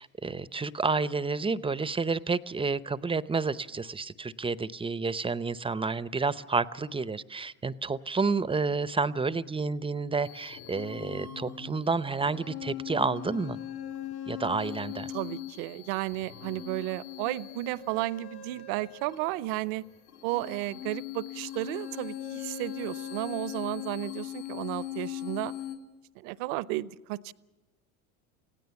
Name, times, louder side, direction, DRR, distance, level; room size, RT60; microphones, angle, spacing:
voice 1, 0.0-13.6 14.3-15.1, right 4 dB, 10° right, 0.8 m, -30 dB
sound 1, 10.2-25.8, left 10 dB, 75° left, 3.6 m, -40 dB
voice 2, 15.1-19.8 20.2-25.5 26.2-27.3, right 17 dB, 60° right, 0.9 m, -33 dB
29.0 x 17.0 x 7.1 m
hypercardioid pair, 85°, 43 cm